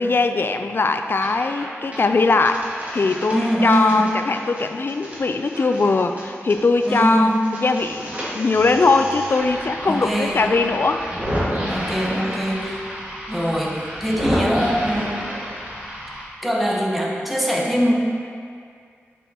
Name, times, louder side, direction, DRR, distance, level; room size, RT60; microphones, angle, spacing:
voice 1, 0.0-2.6 2.9-11.1, left 3 dB, 50° left, 7 dB, 0.3 m, -20 dB
sound 1, 1.1-1.6 1.9-7.0 7.3-16.2, equal, 30° right, 1.7 m, -30 dB
voice 2, 3.3-4.0 6.9-7.6 9.8-10.5 11.7-12.8 13.3-15.3 16.4-17.9, equal, ahead, -3 dB, 1.0 m, -22 dB
7.1 x 6.0 x 2.8 m, 2.2 s
wide cardioid pair, 80°, 5 cm